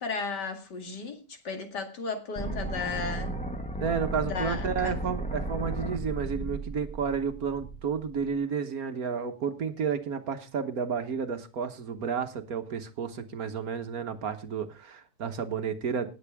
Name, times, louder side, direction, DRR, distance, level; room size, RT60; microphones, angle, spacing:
voice 1, 0.0-3.4 4.2-5.0, left 4 dB, 75° left, 2.7 m, -34 dB
sound 1, 2.4-8.3, right 1 dB, 5° left, 1.2 m, -35 dB
voice 2, 3.8-16.1, right 6 dB, 60° right, 1.5 m, -31 dB
18.5 x 7.8 x 3.5 m
omnidirectional pair, 1.9 m